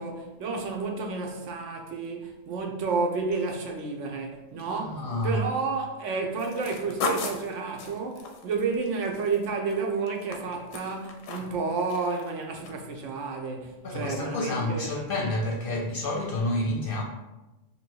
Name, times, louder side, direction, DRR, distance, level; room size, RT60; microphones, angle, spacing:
voice 1, 0.0-15.0, right 4 dB, 75° right, 1.0 m, -31 dB
voice 2, 4.7-5.4 13.8-17.0, left 1 dB, 55° left, 0.6 m, -29 dB
sound 1, 6.4-9.7 10.1-11.6 11.9-12.3 12.6-12.7, left 4 dB, 90° left, 1.0 m, -35 dB
3.0 x 2.7 x 4.4 m
omnidirectional pair, 1.3 m